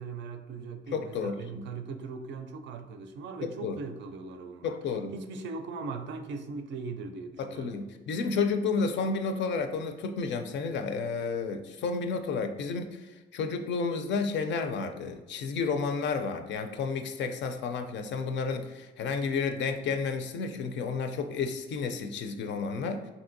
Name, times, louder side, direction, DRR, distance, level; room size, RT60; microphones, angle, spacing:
voice 1, 0.0-4.7 5.1-7.7, right 4 dB, 65° right, 0.4 m, -39 dB
voice 2, 0.9-1.6 3.4-3.8 4.6-5.1 7.4-23.1, left 5 dB, 65° left, 0.4 m, -31 dB
3.1 x 2.6 x 2.6 m
cardioid pair, 90°, 20 cm